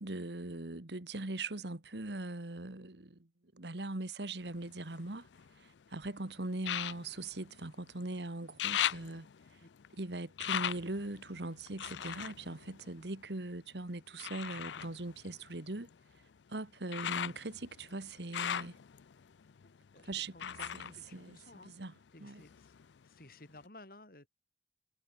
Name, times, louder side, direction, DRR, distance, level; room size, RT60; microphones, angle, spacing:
voice 1, 0.0-3.3 3.5-5.3 5.6-9.3 10.0-15.9 16.5-18.8 20.1-21.4 21.6-21.9 22.2-22.4, right 2 dB, 75° right, 1.7 m, -41 dB
sound 1, 4.4-5.8 6.6-8.1 8.4-13.5 14.2-22.0 22.3-23.2 23.6-23.7, left 10 dB, 90° left, 0.5 m, -40 dB
voice 2, 19.6-21.7 22.1-22.7 23.0-24.3, left 2 dB, 55° left, 3.0 m, -56 dB
head